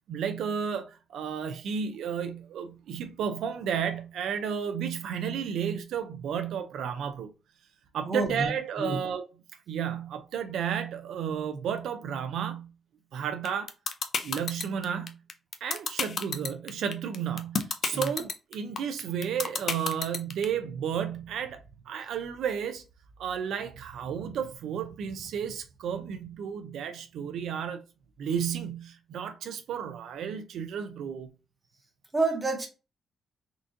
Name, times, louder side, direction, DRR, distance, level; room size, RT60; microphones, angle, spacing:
voice 1, 0.1-7.3 7.9-9.3 9.7-12.7 13.1-13.7 14.2-15.2 15.6-21.6 21.9-22.8 23.2-27.8 28.2-31.3, right 8 dB, 75° right, 0.4 m, -32 dB
voice 2, 8.1-8.5 8.8-9.0 17.9-18.1 32.1-32.7, right 2 dB, 15° right, 0.9 m, -28 dB
sound 1, 13.5-20.4, left 5 dB, 45° left, 0.4 m, -29 dB
3.7 x 2.5 x 2.5 m
cardioid pair, 155°, 0 cm